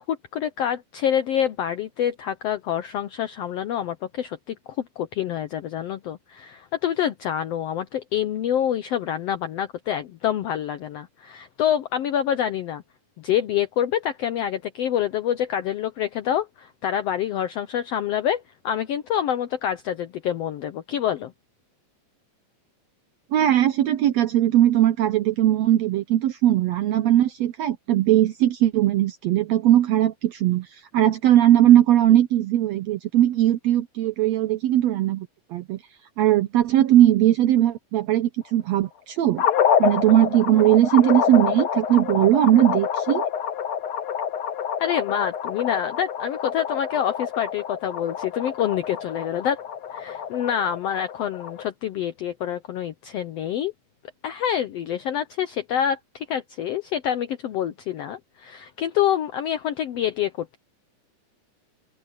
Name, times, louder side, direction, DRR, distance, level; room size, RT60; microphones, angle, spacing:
voice 1, 0.0-12.8 13.2-21.3 44.8-49.6 49.9-53.7 54.2-60.6, left 10 dB, 80° left, 1.4 m, -26 dB
voice 2, 23.3-35.8 36.2-39.4 39.8-43.2, right 12 dB, 75° right, 1.6 m, -19 dB
sound 1, 39.4-51.6, left 8 dB, 60° left, 1.4 m, -27 dB
omnidirectional pair, 3.8 m